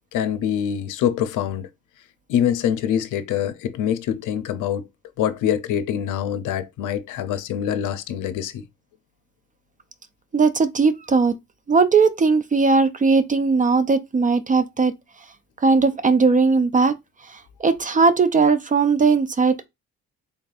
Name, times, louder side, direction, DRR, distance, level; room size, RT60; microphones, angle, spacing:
voice 1, 0.1-1.7 2.3-4.8 5.2-8.6, left 9 dB, 85° left, 0.6 m, -24 dB
voice 2, 10.3-11.3 11.7-14.9 15.6-17.0 17.3-19.7, right 4 dB, 25° right, 0.4 m, -18 dB
3.9 x 3.4 x 2.4 m
cardioid pair, 90°, 30 cm